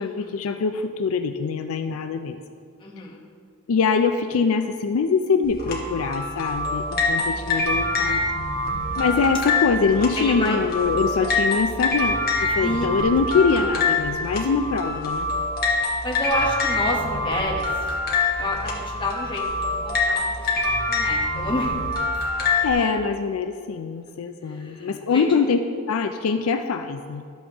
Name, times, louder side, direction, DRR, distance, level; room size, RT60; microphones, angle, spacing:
voice 1, 0.0-2.4 3.7-8.2 9.0-15.3 22.6-25.6 25.9-27.3, left 5 dB, 75° left, 7 dB, 0.4 m, -23 dB
voice 2, 2.8-3.2 7.1-9.1 10.1-10.6 12.6-12.9 13.5-13.7 16.0-17.9 18.4-21.8 24.4-25.4, left 1 dB, 20° left, -3 dB, 1.2 m, -30 dB
sound 1, 5.4-22.7, left 2 dB, 45° left, 1.3 m, -25 dB
12.0 x 7.2 x 2.9 m, 2.2 s
head